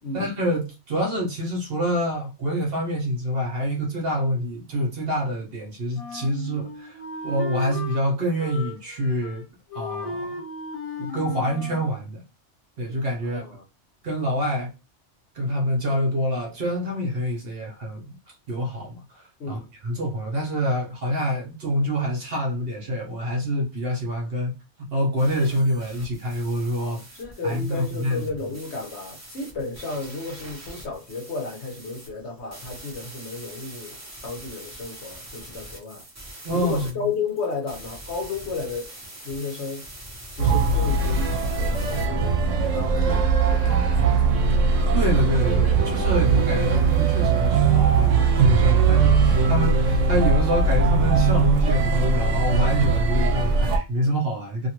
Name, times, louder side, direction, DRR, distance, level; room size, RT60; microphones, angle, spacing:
voice 1, 0.1-9.4 9.7-10.4 11.0-12.2 12.8-13.4 14.0-14.7 15.3-18.2 18.5-24.5 24.9-27.0 27.4-28.2 36.4-36.9 44.9-54.7, equal, 55° right, 1.0 m, -26 dB
Wind instrument woodwind instrument, 5.9-8.0 8.4-9.4 9.7-11.9, left 3 dB, 40° left, 0.6 m, -35 dB
voice 2, 13.2-13.6 19.4-19.7 26.8-36.0 36.5-38.9 39.2-39.9 40.3-42.4 42.7-44.4, left 4 dB, 65° left, 1.1 m, -33 dB
sound 1, 25.2-42.1, right 1 dB, 15° right, 0.7 m, -43 dB
sound 2, 40.4-53.8, right 4 dB, 80° right, 1.0 m, -20 dB
2.7 x 2.5 x 2.9 m
omnidirectional pair, 1.3 m